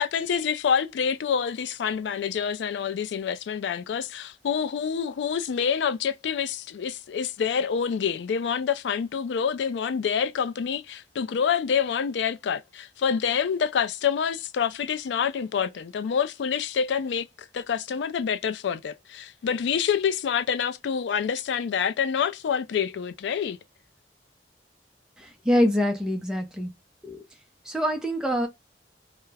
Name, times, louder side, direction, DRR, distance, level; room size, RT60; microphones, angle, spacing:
voice 1, 0.0-17.3 17.5-23.6, left 7 dB, 80° left, 0.3 m, -27 dB
voice 2, 25.2-26.7 27.0-27.2 27.6-28.5, equal, 5° right, 0.5 m, -25 dB
2.3 x 2.0 x 3.2 m
head